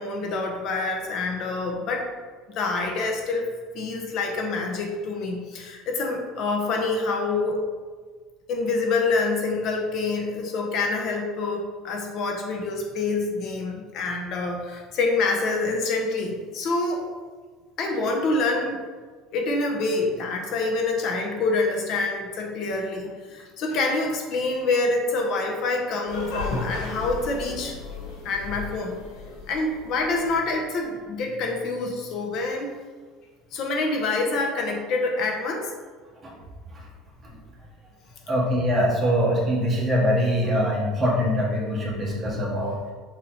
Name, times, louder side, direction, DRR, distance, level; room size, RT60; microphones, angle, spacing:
voice 1, 0.0-2.1 2.5-7.6 8.5-17.0 17.8-18.8 19.3-27.8 28.2-29.0 29.5-32.7 33.5-35.7, left 3 dB, 50° left, 2 dB, 0.9 m, -26 dB
sound 1, 26.1-30.7, left 3 dB, 80° left, 1.6 m, -36 dB
voice 2, 38.3-42.8, equal, 20° right, -4 dB, 1.6 m, -23 dB
6.1 x 4.2 x 4.1 m, 1.5 s
cardioid pair, 145°, 0 cm